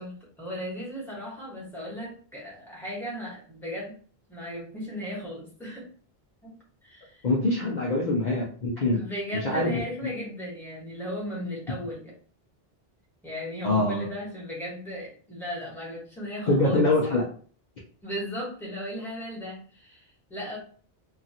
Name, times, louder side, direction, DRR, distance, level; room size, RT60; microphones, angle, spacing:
voice 1, 0.0-3.9 4.3-5.9 6.4-6.6 6.8-7.3 8.9-12.1 13.2-17.1 18.0-20.6, equal, ahead, -5 dB, 1.2 m, -36 dB
voice 2, 7.2-9.0 9.3-9.8 13.6-14.1 16.5-17.2, left 2 dB, 50° left, -3 dB, 0.7 m, -24 dB
2.9 x 2.5 x 2.7 m, 0.43 s
omnidirectional pair, 1.1 m